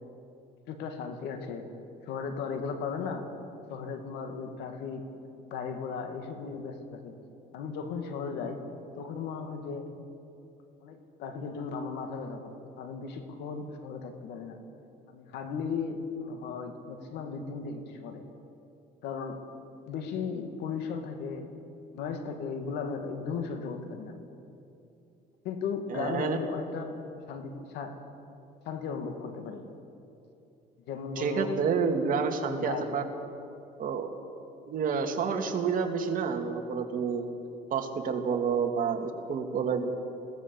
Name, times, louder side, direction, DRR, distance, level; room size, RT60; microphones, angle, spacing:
voice 1, 0.7-1.7 2.1-3.3 3.7-5.0 5.4-7.2 7.5-8.7 8.9-10.0 10.8-14.6 15.1-18.2 19.0-19.4 19.9-21.5 21.9-24.2 25.4-27.0 27.3-28.0 28.7-29.6 30.9-31.6 32.5-32.9, left 5 dB, 85° left, 6 dB, 2.3 m, -36 dB
voice 2, 25.9-26.4 31.2-33.0 33.8-34.1 34.7-37.2 37.7-39.9, right 6 dB, 55° right, 4 dB, 2.3 m, -29 dB
21.0 x 17.5 x 7.3 m, 2.7 s
cardioid pair, 110°, 17 cm